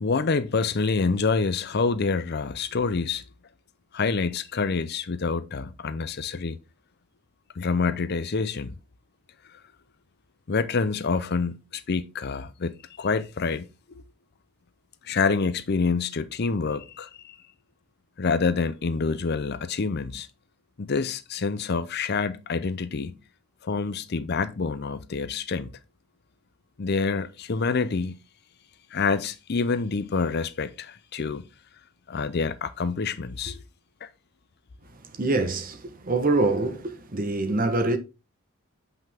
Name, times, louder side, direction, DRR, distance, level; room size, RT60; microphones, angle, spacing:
voice 1, 0.0-3.2 3.9-6.6 7.6-8.8 9.5-9.6 10.5-13.6 15.0-17.4 18.2-20.3 20.8-23.2 23.6-25.7 26.8-28.1 28.9-31.5 32.1-33.6 34.0-34.1, left 4 dB, 45° left, 0.5 m, -27 dB
voice 2, 34.9-38.0, right 2 dB, 40° right, 1.0 m, -25 dB
7.7 x 5.6 x 3.5 m
head